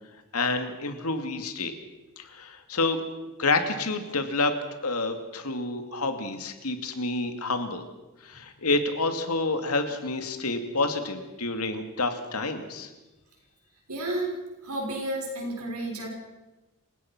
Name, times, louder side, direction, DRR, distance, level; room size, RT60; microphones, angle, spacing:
voice 1, 0.3-1.7 2.2-3.0 3.4-4.5 4.8-7.9 8.2-12.9, left 3 dB, 85° left, 7 dB, 2.5 m, -28 dB
voice 2, 13.9-14.3 14.6-16.1, right 1 dB, 85° right, 0 dB, 6.3 m, -31 dB
28.0 x 17.0 x 6.2 m, 1.1 s
head